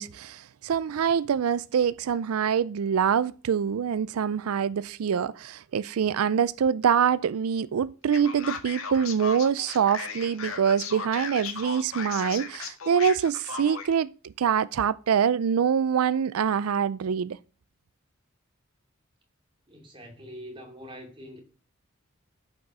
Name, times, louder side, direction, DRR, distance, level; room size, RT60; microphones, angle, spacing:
voice 1, 0.0-17.4, right 7 dB, 90° right, 0.4 m, -25 dB
Male speech man speaking, 8.1-13.9, left 5 dB, 80° left, 1.8 m, -36 dB
voice 2, 19.7-21.4, equal, 25° right, 2.7 m, -44 dB
13.0 x 6.1 x 6.2 m
head